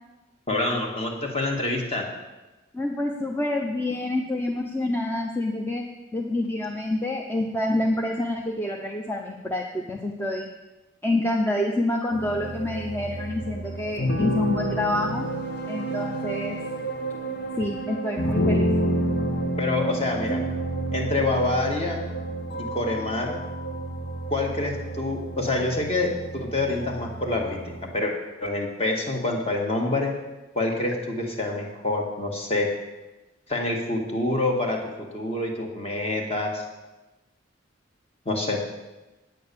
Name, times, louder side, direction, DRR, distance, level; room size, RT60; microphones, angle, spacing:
voice 1, 0.5-2.0 19.6-20.4 20.9-22.0 22.6-23.4 24.3-28.1 28.4-30.1 30.5-32.7 33.5-36.6 38.2-38.6, left 2 dB, 30° left, 1 dB, 1.7 m, -27 dB
voice 2, 2.7-5.8 6.1-10.5 11.0-15.2 15.7-16.6 17.6-18.7, left 1 dB, 10° left, 0 dB, 0.6 m, -27 dB
sound 1, 12.1-27.9, right 1 dB, 55° left, 1.1 m, -29 dB
9.5 x 8.5 x 6.8 m, 1.1 s
head